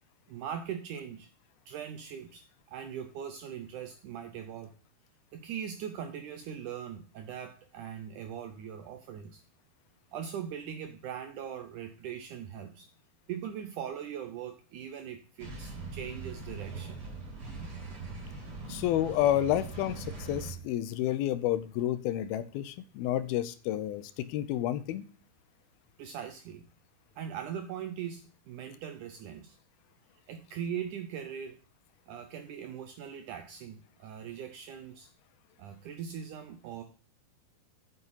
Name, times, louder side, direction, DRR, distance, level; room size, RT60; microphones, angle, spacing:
voice 1, 0.3-1.3 1.7-4.7 5.3-9.4 10.1-12.9 13.3-17.0 26.0-26.6 27.2-29.6 30.3-31.6 32.1-35.1 35.6-36.8, right 8 dB, 75° right, 7 dB, 1.8 m, -40 dB
sound 1, 15.4-20.5, right 3 dB, 35° right, 3.8 m, -41 dB
voice 2, 18.7-25.1, left 12 dB, 80° left, 14 dB, 2.5 m, -30 dB
8.1 x 6.4 x 5.4 m, 0.39 s
omnidirectional pair, 4.5 m